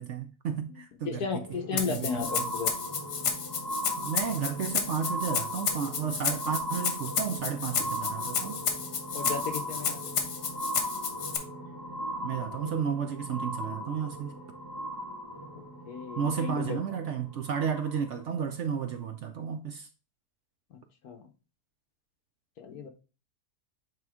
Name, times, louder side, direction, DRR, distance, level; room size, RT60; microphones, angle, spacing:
voice 1, 0.0-1.4 1.7-2.5 4.0-8.6 12.2-14.3 16.2-19.9, right 7 dB, 60° right, 0.8 m, -33 dB
voice 2, 1.0-2.7 9.1-10.1 15.5-16.8 20.7-21.2 22.6-22.9, left 6 dB, 75° left, 1.5 m, -35 dB
sound 1, 1.4-18.2 19.0-19.1, equal, 15° left, 0.8 m, -38 dB
Rattle (instrument), 1.8-11.4, left 6 dB, 90° left, 1.6 m, -32 dB
8.7 x 3.0 x 3.6 m
omnidirectional pair, 1.7 m